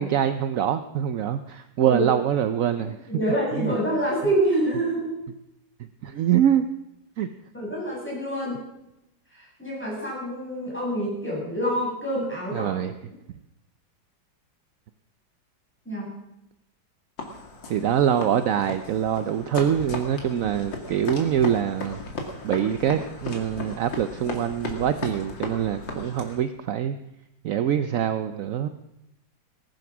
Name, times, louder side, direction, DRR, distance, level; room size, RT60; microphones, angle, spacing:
voice 1, 0.0-3.0 3.6-3.8 6.0-6.7 7.2-7.3 12.5-12.9 17.7-22.0 22.4-27.0 27.4-28.7, right 9 dB, 65° right, 10 dB, 0.8 m, -24 dB
voice 2, 3.1-5.2 7.5-8.6 9.4-12.7 15.9-16.1, right 1 dB, 5° left, -5 dB, 7.5 m, -27 dB
sound 1, 17.2-26.4, left 2 dB, 75° left, 2.9 m, -36 dB
19.0 x 10.5 x 6.1 m, 0.88 s
omnidirectional pair, 2.0 m